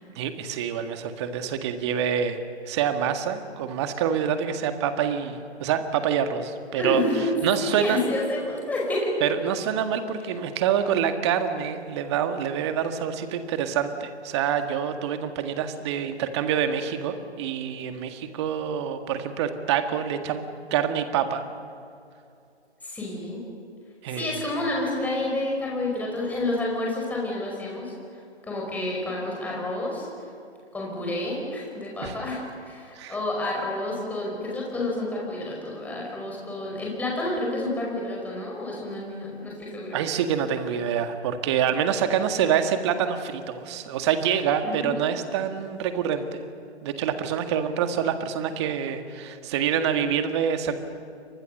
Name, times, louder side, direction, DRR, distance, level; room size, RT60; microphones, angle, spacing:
voice 1, 0.2-2.4 2.7-7.0 7.4-8.0 9.2-20.4 20.7-21.4 24.0-24.3 32.0-32.2 33.0-33.1 39.9-46.4 46.8-50.7, right 8 dB, 25° right, 8 dB, 1.8 m, -26 dB
voice 2, 6.8-7.3 7.6-9.1 22.8-23.4 24.1-27.9 28.5-30.1 30.7-40.0 44.6-45.1, left 1 dB, 5° left, -2 dB, 5.2 m, -29 dB
30.0 x 24.5 x 6.7 m, 2.5 s
figure-of-eight pair, 140°, 33 cm